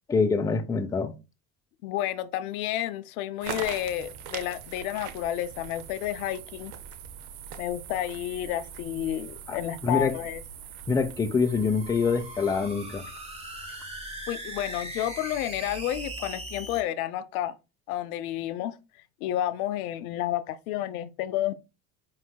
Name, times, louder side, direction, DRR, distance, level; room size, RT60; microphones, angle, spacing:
voice 1, 0.1-1.1 9.5-10.1 10.9-13.0, left 5 dB, 10° left, 0.4 m, -25 dB
voice 2, 1.8-6.7 7.6-10.4 14.3-17.5 17.9-18.8 19.2-21.5, left 13 dB, 80° left, 0.5 m, -30 dB
sound 1, 3.4-14.6, right 8 dB, 80° right, 0.7 m, -43 dB
sound 2, 11.4-16.8, right 1 dB, 15° right, 1.3 m, -40 dB
5.5 x 3.2 x 2.2 m
hypercardioid pair, 70°, 43 cm